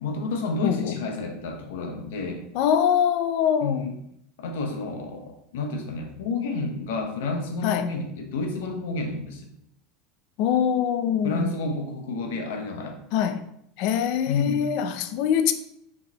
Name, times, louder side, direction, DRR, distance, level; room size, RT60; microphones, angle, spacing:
voice 1, 0.0-2.4 3.6-3.9 4.4-9.5 11.2-13.0 14.3-14.6, left 3 dB, 90° left, 0.8 m, -30 dB
voice 2, 0.6-1.0 2.5-3.8 7.6-7.9 10.4-11.5 13.1-13.4 13.8-15.5, left 8 dB, 55° left, 0.4 m, -23 dB
4.8 x 3.6 x 2.9 m
supercardioid pair, 155°, 0 cm